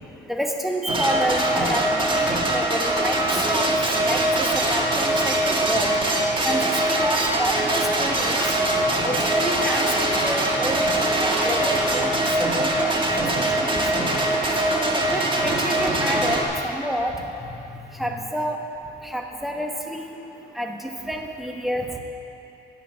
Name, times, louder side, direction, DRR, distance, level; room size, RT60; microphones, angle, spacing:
voice 1, 0.3-3.7 4.0-5.9 6.4-8.4 9.0-13.0 13.3-13.8 14.6-17.2 18.0-18.6 19.0-20.2 20.5-22.0, equal, ahead, 2 dB, 1.1 m, -29 dB
sound 1, 0.9-16.4, right 1 dB, 25° right, 1.4 m, -22 dB
10.0 x 8.2 x 6.1 m, 2.8 s
cardioid pair, 90°, 20 cm